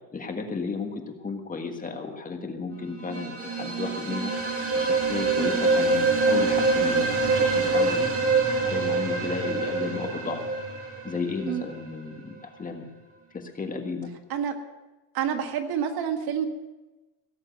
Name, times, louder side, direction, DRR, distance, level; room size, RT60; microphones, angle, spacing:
voice 1, 0.1-0.9 1.2-4.3 4.7-8.1 8.6-10.4 11.0-12.9 13.3-14.1, left 4 dB, 20° left, 4 dB, 1.6 m, -33 dB
sound 1, 3.0-11.8, right 3 dB, 35° right, 2.5 m, -25 dB
voice 2, 15.1-16.5, right 8 dB, 65° right, 6 dB, 1.8 m, -28 dB
17.5 x 7.3 x 8.2 m, 1.1 s
cardioid pair, 140°, 39 cm